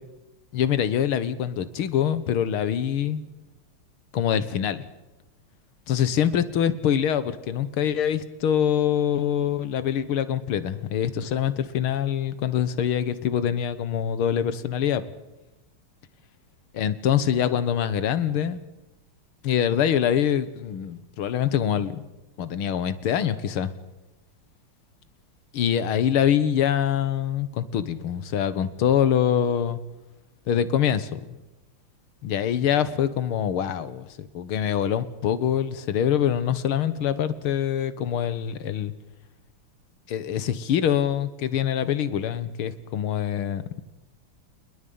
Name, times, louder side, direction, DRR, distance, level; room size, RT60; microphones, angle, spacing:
voice 1, 0.5-3.2 4.1-4.9 5.9-15.1 16.7-18.6 19.4-22.0 22.4-23.7 25.5-29.8 30.5-31.2 32.2-38.9 40.1-43.8, left 9 dB, 75° left, 14 dB, 2.1 m, -24 dB
29.5 x 20.5 x 5.5 m, 1.0 s
omnidirectional pair, 2.4 m